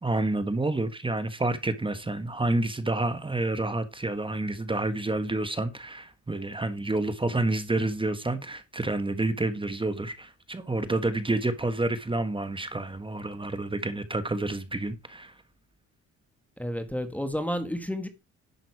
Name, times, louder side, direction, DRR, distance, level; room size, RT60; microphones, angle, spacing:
voice 1, 0.0-15.3, right 2 dB, 15° right, 1.4 m, -29 dB
voice 2, 16.6-18.1, equal, 5° left, 1.8 m, -31 dB
11.0 x 6.5 x 4.8 m
cardioid pair, 90°, 30 cm